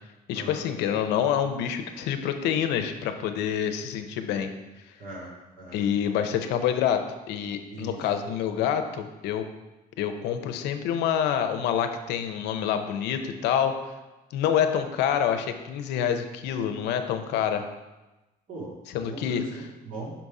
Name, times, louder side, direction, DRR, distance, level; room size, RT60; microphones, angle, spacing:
voice 1, 0.3-4.5 5.7-9.5 10.0-13.9 14.3-17.7 18.9-19.7, left 9 dB, 85° left, 7 dB, 0.6 m, -27 dB
voice 2, 5.0-5.8 7.7-8.1 18.5-18.7 19.0-20.1, right 2 dB, 55° right, -4 dB, 2.2 m, -39 dB
5.8 x 4.0 x 4.8 m, 1.1 s
cardioid pair, 110°, 17 cm